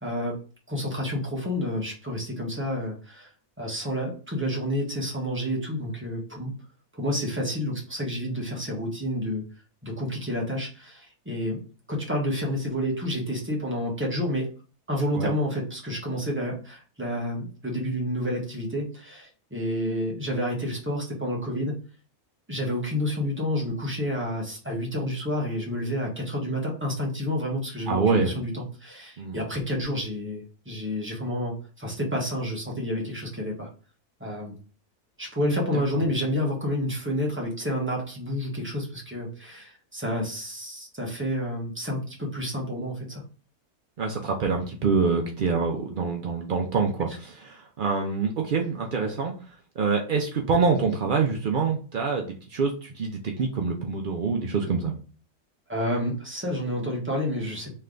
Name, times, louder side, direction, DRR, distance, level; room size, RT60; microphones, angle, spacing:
voice 1, 0.0-0.4 0.7-3.3 3.6-6.5 6.9-9.4 9.8-11.6 11.9-14.5 14.9-21.8 22.5-33.7 34.2-34.6 35.2-43.2 49.0-49.2 55.7-57.7, equal, 10° right, -2 dB, 1.0 m, -29 dB
voice 2, 27.9-28.3 29.2-29.4 35.7-35.8 44.0-49.3 49.8-55.0, right 4 dB, 75° right, 2 dB, 0.4 m, -26 dB
3.3 x 3.3 x 3.7 m, 0.38 s
omnidirectional pair, 1.6 m